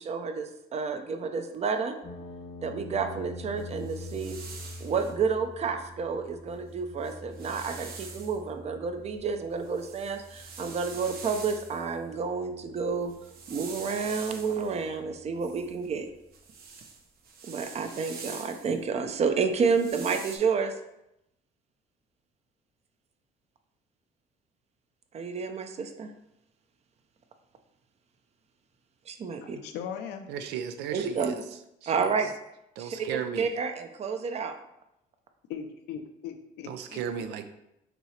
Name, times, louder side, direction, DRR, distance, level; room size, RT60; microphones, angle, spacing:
voice 1, 0.0-2.0 2.6-4.4 4.8-13.1 13.5-16.1 17.5-20.7 25.1-26.1 29.1-29.6 30.9-31.4 31.9-32.3 32.8-34.6, right 5 dB, 40° right, 7 dB, 0.6 m, -30 dB
sound 1, 2.0-16.1, left 2 dB, 40° left, 0.8 m, -46 dB
sound 2, 3.6-5.1 6.5-6.6 6.9-8.4 8.9-11.9 12.9-14.8 15.4-18.8 19.5-20.4, right 5 dB, 60° right, 0.9 m, -45 dB
voice 2, 29.4-30.3 35.5-37.0, left 8 dB, 85° left, 7 dB, 0.6 m, -39 dB
voice 3, 30.3-31.4 31.8-32.3 32.8-33.5 36.6-37.5, right 8 dB, 85° right, 8 dB, 0.5 m, -35 dB
6.0 x 2.8 x 3.2 m, 0.84 s
cardioid pair, 110°, 17 cm